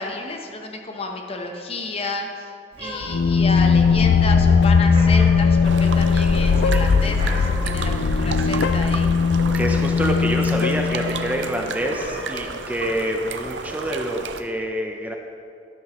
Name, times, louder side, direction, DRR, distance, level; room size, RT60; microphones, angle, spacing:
voice 1, 0.0-2.5 2.8-9.1, left 3 dB, 35° left, 3 dB, 0.9 m, -31 dB
Meow, 2.7-14.3, right 1 dB, 30° right, 2.2 m, -39 dB
sound 1, 3.0-11.6, left 5 dB, 75° left, 0.4 m, -18 dB
sound 2, 5.6-14.4, right 5 dB, 80° right, 0.6 m, -33 dB
voice 2, 9.5-15.1, right 1 dB, 10° right, 2 dB, 0.6 m, -26 dB
11.5 x 11.0 x 3.0 m, 2.4 s
head